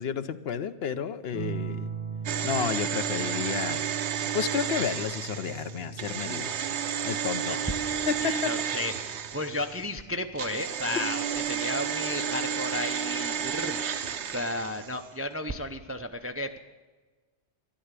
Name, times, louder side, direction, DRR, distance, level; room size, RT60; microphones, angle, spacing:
voice 1, 0.0-1.9 2.4-3.9 4.3-6.5 7.0-7.6 8.1-8.5, left 7 dB, 65° left, 11 dB, 0.9 m, -31 dB
sound 1, 1.3-10.4 11.8-12.4, right 6 dB, 35° left, 3.8 m, -41 dB
sound 2, 2.3-9.8 10.4-15.1 15.3-15.4, right 8 dB, 75° right, 1.0 m, -32 dB
voice 2, 8.2-13.8 14.1-16.6, left 2 dB, 20° right, 7 dB, 0.4 m, -34 dB
13.0 x 11.5 x 8.2 m, 1.3 s
omnidirectional pair, 1.2 m